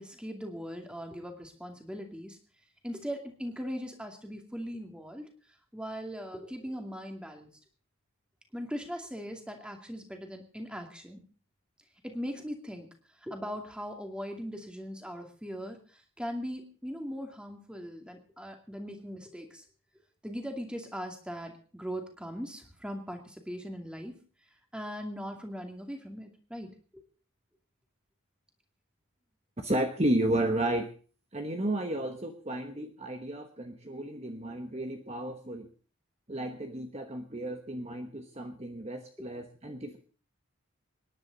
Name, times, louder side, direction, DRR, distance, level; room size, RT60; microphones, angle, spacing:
voice 1, 0.0-2.4 2.8-5.3 5.7-7.5 8.5-11.2 12.0-12.9 13.2-15.8 16.2-19.6 20.2-24.1 24.7-27.0 39.2-39.3, equal, 5° right, 3 dB, 2.3 m, -39 dB
voice 2, 29.6-30.9 31.3-35.7 36.3-40.0, right 1 dB, 30° right, 5 dB, 1.2 m, -32 dB
26.0 x 10.5 x 4.0 m, 0.40 s
head